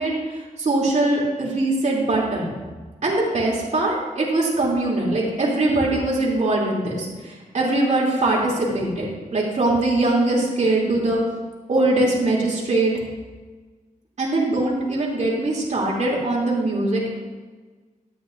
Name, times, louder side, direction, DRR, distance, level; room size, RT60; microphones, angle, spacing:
voice 1, 0.0-2.5 3.0-11.2 11.7-12.9 14.2-17.1, right 2 dB, 55° right, -4 dB, 2.8 m, -22 dB
13.0 x 10.0 x 2.6 m, 1.3 s
wide cardioid pair, 125°, 14 cm